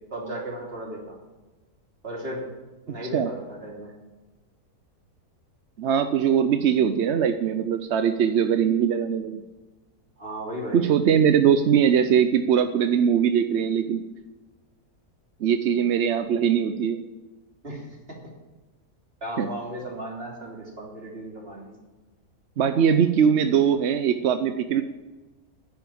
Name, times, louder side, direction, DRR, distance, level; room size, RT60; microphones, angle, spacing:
voice 1, 0.1-1.2 2.0-2.5 2.9-3.9 10.2-10.8 17.6-17.9 18.2-18.3 19.2-21.8, right 1 dB, 35° right, -2 dB, 3.5 m, -35 dB
voice 2, 5.8-9.4 10.7-14.0 15.4-17.0 19.4-19.5 22.6-24.8, right 8 dB, 60° right, 9 dB, 0.8 m, -21 dB
10.5 x 9.2 x 8.6 m, 1.2 s
omnidirectional pair, 1.7 m